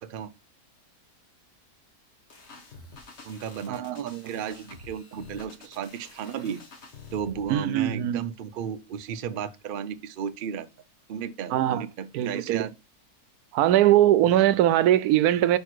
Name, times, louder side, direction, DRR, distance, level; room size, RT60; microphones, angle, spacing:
voice 1, 0.0-0.3 3.2-6.6 7.1-10.7 11.1-12.7, right 8 dB, 60° right, 0.6 m, -34 dB
sound 1, 2.3-7.6, left 3 dB, 50° left, 1.5 m, -48 dB
voice 2, 3.7-4.3 7.5-8.3 11.5-11.9 12.1-12.7 13.5-15.6, right 12 dB, 85° right, 1.1 m, -21 dB
5.3 x 4.6 x 6.1 m
omnidirectional pair, 1.6 m